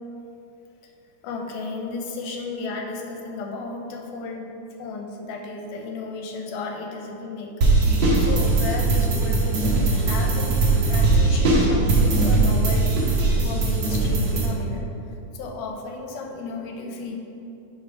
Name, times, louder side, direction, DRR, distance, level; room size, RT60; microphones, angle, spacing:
voice 1, 1.2-4.5 4.8-7.5 8.2-13.1 13.3-14.9 15.3-17.2, left 3 dB, 85° left, 1 dB, 2.2 m, -34 dB
sound 1, 7.6-14.5, right 3 dB, 65° right, 1.1 m, -20 dB
5.6 x 5.0 x 4.8 m, 2.9 s
omnidirectional pair, 3.5 m